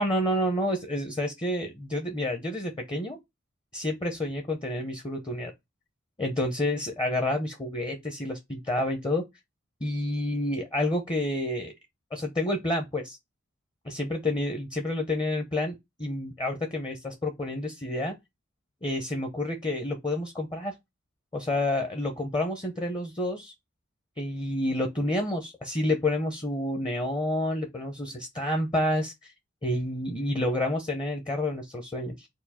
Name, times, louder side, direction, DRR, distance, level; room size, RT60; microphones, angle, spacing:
voice 1, 0.0-3.2 3.7-5.5 6.2-9.2 9.8-11.7 12.1-13.2 13.8-18.1 18.8-20.7 21.3-23.5 24.2-29.3 29.6-32.3, left 1 dB, 20° left, 0.6 m, -29 dB
4.6 x 2.3 x 4.1 m
head